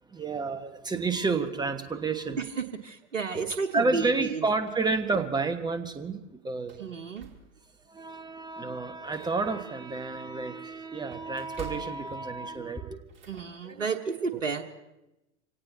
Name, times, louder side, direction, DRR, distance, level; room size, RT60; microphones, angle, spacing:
voice 1, 0.1-2.4 3.3-3.4 3.7-7.0 7.9-13.0, right 3 dB, 10° right, 8 dB, 1.3 m, -30 dB
voice 2, 2.4-4.4 6.8-7.3 13.3-14.6, right 5 dB, 80° right, 5 dB, 1.2 m, -32 dB
sound 1, 4.3-5.6 6.0-6.1 6.5-7.8 8.2-8.4 8.7-13.4, right 7 dB, 30° right, 2.7 m, -49 dB
26.0 x 17.5 x 2.9 m, 0.96 s
figure-of-eight pair, 85°, 38 cm